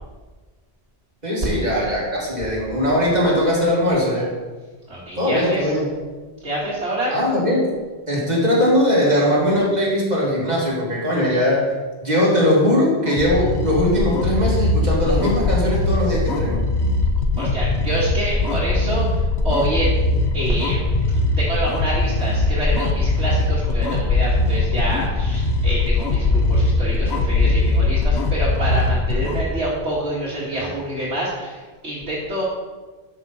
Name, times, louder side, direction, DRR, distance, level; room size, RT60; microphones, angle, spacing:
voice 1, 1.2-4.3 5.2-5.9 7.1-7.7 8.1-11.7 12.0-16.6, left 1 dB, 40° right, -5 dB, 2.9 m, -20 dB
voice 2, 4.9-5.7 6.4-7.1 17.4-20.1 20.3-32.4, right 1 dB, 75° right, -9 dB, 2.4 m, -27 dB
sound 1, 13.1-29.5, left 2 dB, 85° left, 1.3 m, -20 dB
12.0 x 6.6 x 4.3 m, 1.3 s
omnidirectional pair, 1.1 m